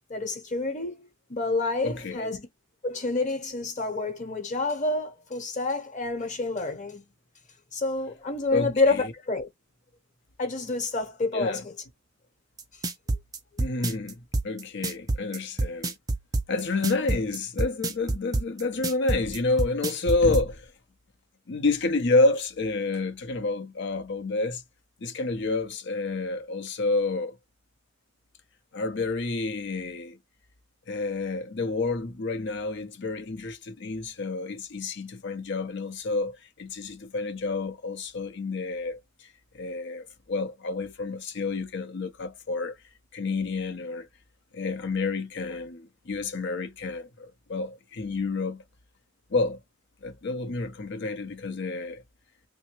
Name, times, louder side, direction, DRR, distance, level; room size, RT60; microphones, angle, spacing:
voice 1, 0.1-1.0 1.3-2.5 2.8-7.0 7.7-9.5 10.4-11.7, left 3 dB, 40° left, 1.0 m, -28 dB
voice 2, 1.8-2.3 8.5-9.1 11.3-11.6 13.6-15.9 16.5-20.7 21.5-24.6 25.0-27.4 28.7-30.2 30.9-39.0 39.5-42.7 43.1-44.1 44.5-48.6 49.3-49.6 50.0-52.0, left 3 dB, 60° left, 0.7 m, -29 dB
sound 1, 12.6-20.5, right 2 dB, 20° right, 0.4 m, -27 dB
3.3 x 2.1 x 2.9 m
head